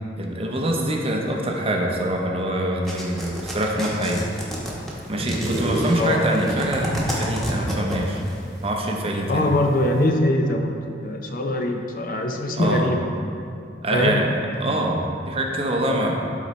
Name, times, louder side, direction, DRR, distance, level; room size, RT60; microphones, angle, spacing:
voice 1, 0.2-4.3 5.1-8.2 8.6-9.5 12.6-12.9 13.8-16.2, right 1 dB, 35° right, 0 dB, 0.7 m, -24 dB
sound 1, 2.9-8.3, equal, ahead, 1.2 m, -27 dB
voice 2, 9.3-13.0 13.9-14.2 15.9-16.1, left 1 dB, 50° left, 3 dB, 0.6 m, -22 dB
12.0 x 4.1 x 3.2 m, 2.4 s
head